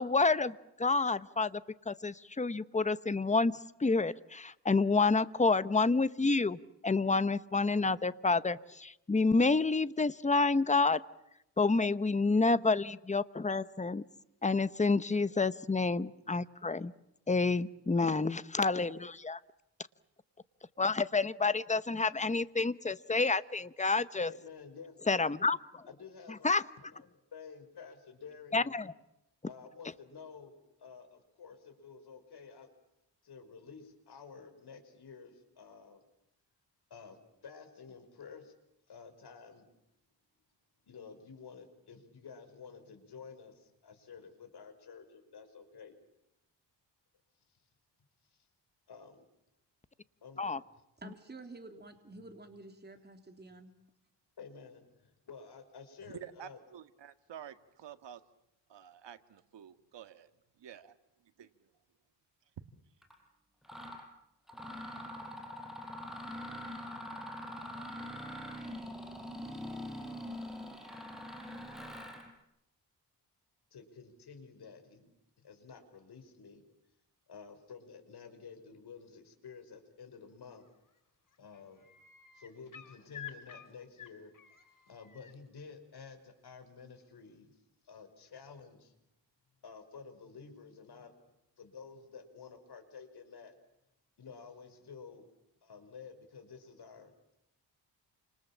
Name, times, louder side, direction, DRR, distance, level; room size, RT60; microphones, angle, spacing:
voice 1, 0.0-1.6 1.9-3.5 3.8-11.0 11.6-14.0 14.4-16.9 17.3-19.4 20.8-24.3 25.1-25.8 26.4-26.6 28.5-28.9 50.4-50.6, left 3 dB, 15° left, 14 dB, 1.0 m, -29 dB
voice 2, 24.2-25.0 25.9-26.5 26.8-28.8 29.4-32.7 33.2-36.0 36.9-37.2 37.4-38.5 38.9-39.7 40.8-45.9 48.9-49.3 50.2-50.8 54.4-56.6 73.7-75.1 75.4-76.6 77.3-80.6 81.4-81.8 82.3-84.3 84.9-87.6 87.8-88.9 89.6-91.1 91.6-93.5 94.2-95.3 95.6-97.3, left 5 dB, 65° left, 7 dB, 5.6 m, -51 dB
voice 3, 51.0-53.7, right 2 dB, 25° right, 5 dB, 3.3 m, -50 dB
voice 4, 56.1-58.2 58.7-60.3 60.6-60.9 61.4-61.5, right 9 dB, 85° right, 9 dB, 2.0 m, -49 dB
Mechanisms, 63.0-63.1 63.6-64.0 64.5-72.3, equal, ahead, 6.4 m, -43 dB
sound 1, 80.6-81.0 81.3-85.3 87.0-87.1, left 10 dB, 50° left, 3.1 m, -51 dB
29.0 x 27.0 x 7.3 m, 0.85 s
wide cardioid pair, 110°, 42 cm